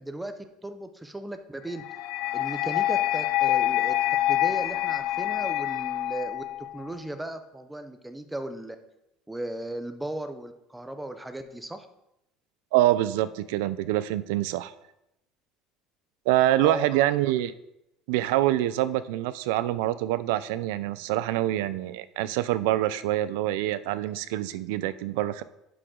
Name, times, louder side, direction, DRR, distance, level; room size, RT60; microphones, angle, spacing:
voice 1, 0.0-1.8 2.3-3.9 4.3-8.8 9.3-11.9 16.6-16.9, right 1 dB, 5° right, 8 dB, 0.5 m, -36 dB
sound 1, 1.8-6.8, left 13 dB, 60° left, 0.3 m, -26 dB
voice 2, 12.7-14.7 16.3-17.5 18.1-25.4, right 14 dB, 85° right, 14 dB, 0.4 m, -25 dB
10.5 x 5.0 x 3.7 m, 0.87 s
cardioid pair, 175°, 0 cm